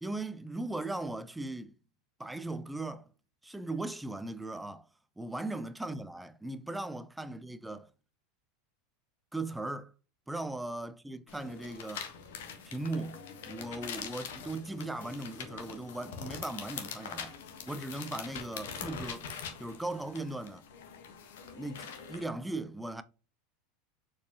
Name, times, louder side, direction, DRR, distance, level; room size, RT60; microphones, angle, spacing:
voice 1, 0.0-1.7 2.2-3.1 3.4-4.9 5.2-7.9 9.3-9.9 10.3-12.1 12.6-13.2 13.5-17.4 17.7-19.3 19.6-20.6 21.5-23.0, right 2 dB, 5° right, 0.6 m, -38 dB
sound 1, 11.3-22.2, left 7 dB, 65° left, 1.3 m, -43 dB
7.0 x 4.7 x 2.9 m
figure-of-eight pair, 80°, 0 cm